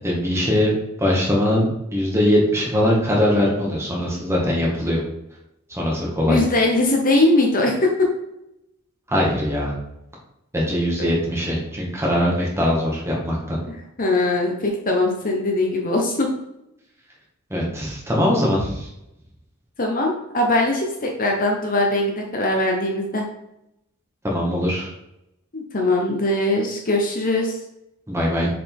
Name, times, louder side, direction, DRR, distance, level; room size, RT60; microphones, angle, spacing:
voice 1, 0.0-0.7 1.0-5.0 5.7-6.4 9.1-9.7 10.5-13.6 17.5-18.9 24.2-24.9 28.1-28.5, equal, 15° right, -3 dB, 1.9 m, -21 dB
voice 2, 6.3-7.9 11.0-11.1 13.7-16.3 19.8-23.2 25.5-27.6, left 2 dB, 40° left, 1 dB, 1.0 m, -21 dB
6.9 x 5.0 x 3.6 m, 0.85 s
head